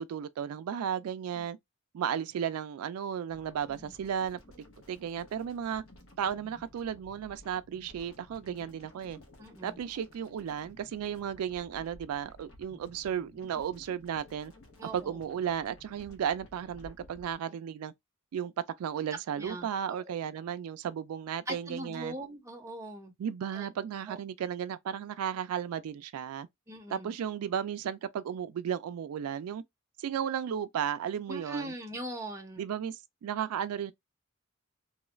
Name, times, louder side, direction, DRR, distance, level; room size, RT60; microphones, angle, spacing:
voice 1, 0.0-1.6 1.9-4.4 4.9-5.8 6.2-9.2 9.6-14.5 14.8-17.9 18.3-18.5 18.8-22.2 23.2-26.5 26.9-29.6 30.0-31.7 32.6-33.9, right 8 dB, 85° right, 0.3 m, -34 dB
sound 1, 3.3-17.4, left 1 dB, 70° left, 0.9 m, -55 dB
voice 2, 9.4-9.8 14.8-15.2 19.4-20.2 21.5-23.1 23.5-23.7 24.1-24.2 26.7-27.1 31.3-32.6, right 1 dB, 15° right, 0.6 m, -41 dB
3.0 x 2.3 x 3.0 m
head